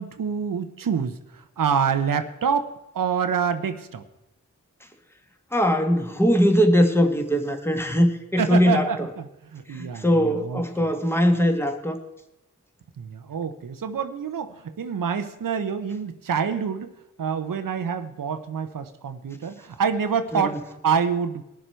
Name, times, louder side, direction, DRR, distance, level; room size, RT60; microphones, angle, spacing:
voice 1, 0.0-4.0 8.4-10.9 13.0-16.9 17.2-21.4, right 6 dB, 85° right, 9 dB, 0.8 m, -27 dB
voice 2, 5.5-8.9 9.7-12.0 20.3-20.6, equal, 5° left, 5 dB, 1.6 m, -21 dB
20.5 x 6.9 x 4.4 m, 0.91 s
cardioid pair, 55°, 32 cm